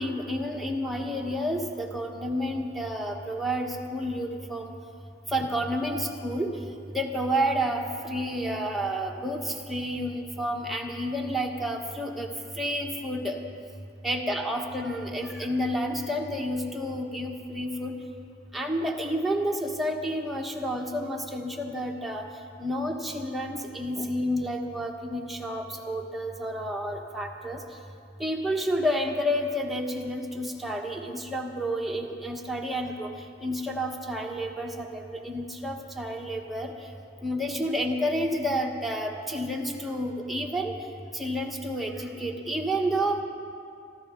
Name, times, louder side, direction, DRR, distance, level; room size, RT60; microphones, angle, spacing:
voice 1, 0.0-4.7 5.3-6.6 6.9-12.3 12.6-13.4 14.0-18.0 18.5-22.3 22.6-27.6 28.2-33.1 33.4-36.7 37.2-40.7 41.1-43.2, equal, ahead, -1 dB, 1.3 m, -30 dB
25.0 x 12.5 x 3.8 m, 2.4 s
head